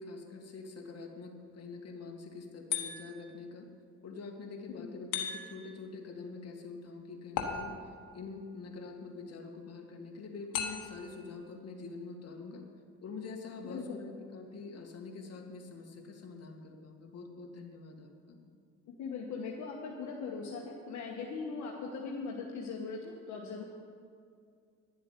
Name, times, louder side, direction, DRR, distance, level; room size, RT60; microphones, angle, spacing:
voice 1, 0.0-3.7 4.0-7.8 8.1-12.6 13.0-18.4, left 4 dB, 55° left, 2 dB, 1.9 m, -45 dB
sound 1, 2.7-3.3 5.1-5.8 7.4-8.1 10.5-11.1, left 7 dB, 90° left, 1.3 m, -37 dB
voice 2, 13.6-14.0 18.9-23.6, left 4 dB, 70° left, -1 dB, 1.4 m, -40 dB
11.0 x 7.6 x 8.1 m, 2.2 s
cardioid pair, 90°, 30 cm